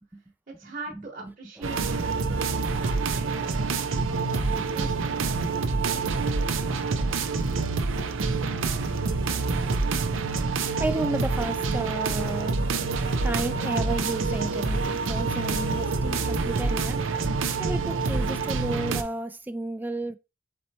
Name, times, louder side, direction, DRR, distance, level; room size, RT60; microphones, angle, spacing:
voice 1, 0.5-4.3 4.7-5.2, right 3 dB, 40° right, 1.1 m, -42 dB
sound 1, 1.6-19.0, right 4 dB, 80° right, 0.5 m, -27 dB
voice 2, 10.8-12.6 13.2-17.0 17.6-20.2, right 2 dB, 10° right, 0.3 m, -32 dB
4.3 x 4.2 x 2.7 m
head